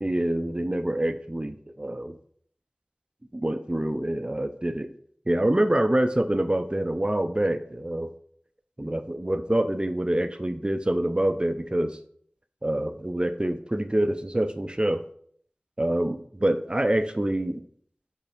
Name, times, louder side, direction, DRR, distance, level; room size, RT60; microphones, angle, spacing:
voice 1, 0.0-2.2 3.3-4.9 5.3-8.1 8.8-12.0 12.6-15.0 15.8-17.6, right 1 dB, 25° right, 9 dB, 0.5 m, -26 dB
5.8 x 4.4 x 5.0 m, 0.62 s
wide cardioid pair, 45°, 3 cm